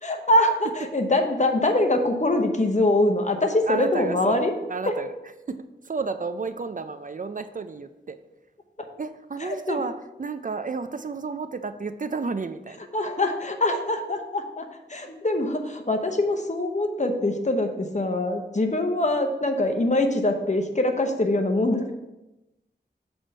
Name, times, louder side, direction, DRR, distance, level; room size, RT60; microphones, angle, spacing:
voice 1, 0.0-4.5 9.4-9.8 12.9-14.6 14.9-21.9, left 1 dB, 40° left, 4 dB, 0.9 m, -23 dB
voice 2, 3.7-5.1 5.5-8.2 9.0-12.8, right 4 dB, 50° right, 10 dB, 0.4 m, -32 dB
7.3 x 3.5 x 5.3 m, 0.98 s
wide cardioid pair, 60°, 18 cm